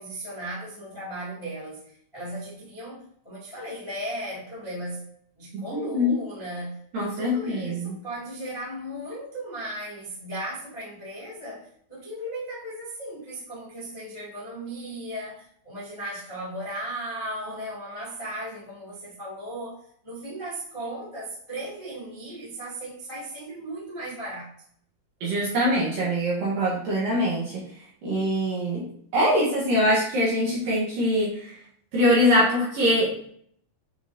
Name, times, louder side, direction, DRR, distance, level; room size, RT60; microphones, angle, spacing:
voice 1, 0.0-5.1 5.4-19.8 20.0-24.5, right 1 dB, 20° left, -8 dB, 0.9 m, -36 dB
voice 2, 6.9-7.9 25.2-27.6 28.0-28.9 29.1-31.5 31.9-33.1, equal, 65° right, -5 dB, 2.5 m, -23 dB
9.0 x 3.8 x 2.9 m, 0.64 s
omnidirectional pair, 5.4 m